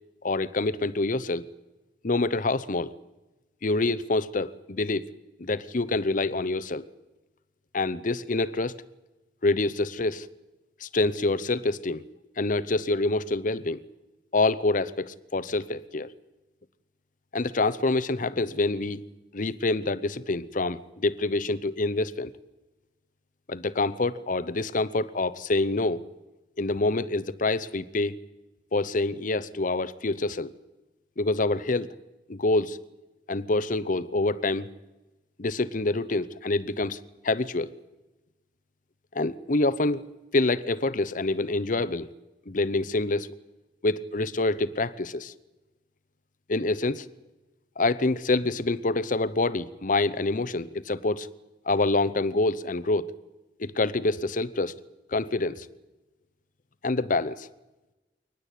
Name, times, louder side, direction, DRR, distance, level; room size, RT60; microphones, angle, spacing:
voice 1, 0.2-1.5 2.0-2.9 3.6-5.1 5.4-6.9 7.7-8.8 9.4-10.3 10.8-12.0 12.4-13.8 14.3-16.1 17.3-19.0 19.3-22.3 23.5-26.0 26.6-28.2 28.7-30.5 31.2-31.9 32.3-32.8 33.3-34.7 35.4-37.0 37.2-37.7 39.1-40.1 40.3-42.1 42.5-43.3 43.8-45.3 46.5-47.1 47.8-51.3 51.7-53.1 53.6-54.8 55.1-55.7 56.8-57.5, left 2 dB, 50° left, 15 dB, 0.8 m, -26 dB
23.5 x 19.5 x 8.4 m, 1.1 s
head